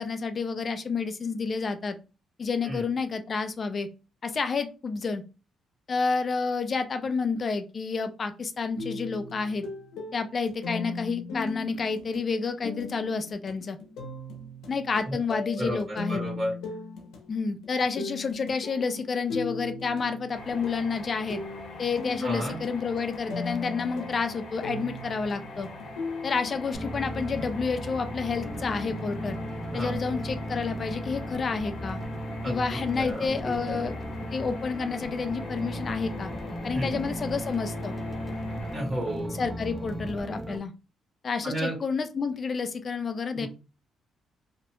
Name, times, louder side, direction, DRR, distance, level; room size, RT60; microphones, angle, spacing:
voice 1, 0.0-1.9 2.4-3.9 4.2-5.2 5.9-9.6 10.1-13.8 14.7-16.2 17.3-21.4 21.8-25.7 26.2-29.4 29.7-32.0 32.4-33.9 34.3-36.3 36.6-37.9 39.4-40.7 41.2-43.5, left 5 dB, 40° left, 9 dB, 0.4 m, -29 dB
sound 1, 8.8-26.7, left 3 dB, 90° left, 0.8 m, -39 dB
voice 2, 15.6-16.5 22.2-22.6 29.7-29.9 32.4-33.3 33.8-33.9 36.7-37.0 38.7-39.3 41.4-41.8 43.3-43.5, right 1 dB, 30° right, -1 dB, 1.6 m, -32 dB
sound 2, 20.3-38.8, left 2 dB, 65° left, 1.0 m, -43 dB
sound 3, 26.7-40.6, equal, ahead, 0.7 m, -36 dB
2.8 x 2.1 x 3.1 m, 0.32 s
cardioid pair, 90°, 0 cm